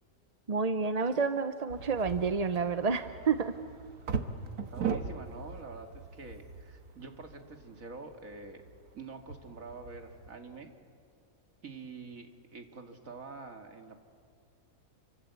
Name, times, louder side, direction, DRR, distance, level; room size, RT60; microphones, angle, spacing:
voice 1, 0.5-3.5, right 5 dB, 35° right, 9 dB, 0.6 m, -29 dB
sound 1, 1.7-10.3, right 5 dB, 85° right, 1.8 m, -40 dB
voice 2, 4.7-8.6 8.9-10.7 11.6-14.0, right 4 dB, 65° right, 5 dB, 2.5 m, -46 dB
29.0 x 24.5 x 8.2 m, 2.3 s
omnidirectional pair, 1.5 m